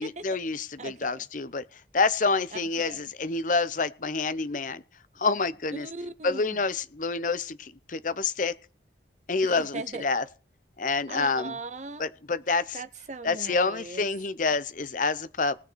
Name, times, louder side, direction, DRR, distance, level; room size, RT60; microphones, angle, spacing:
voice 1, 0.0-1.6 1.9-4.8 5.2-5.9 6.2-8.5 9.3-10.2 10.8-11.5 12.0-12.8 13.2-15.5, left 4 dB, 45° left, 0.7 m, -27 dB
voice 2, 0.8-1.2 2.5-2.6 2.8-3.1 5.7-6.6 9.4-10.1 11.1-12.0 12.7-14.1, right 3 dB, 40° right, 0.8 m, -39 dB
19.5 x 6.7 x 4.5 m
head